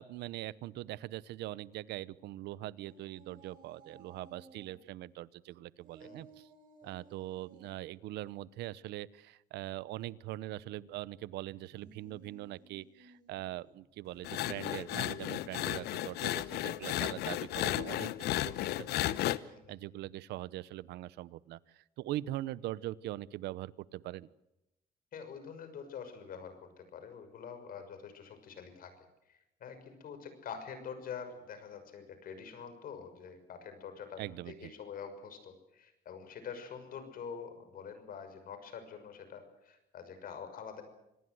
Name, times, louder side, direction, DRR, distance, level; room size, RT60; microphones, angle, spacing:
voice 1, 0.0-6.5 6.8-24.3 34.2-34.7, right 15 dB, 80° right, 20 dB, 0.9 m, -42 dB
sound 1, 2.8-4.8 5.8-7.8 11.6-13.8, right 4 dB, 50° right, 7.3 m, -58 dB
sound 2, 14.2-19.4, left 14 dB, 75° left, 1.0 m, -34 dB
voice 2, 25.1-28.9 29.3-34.2 34.5-40.8, left 6 dB, 60° left, 9 dB, 6.2 m, -46 dB
26.0 x 19.0 x 7.9 m, 0.89 s
cardioid pair, 110°, 17 cm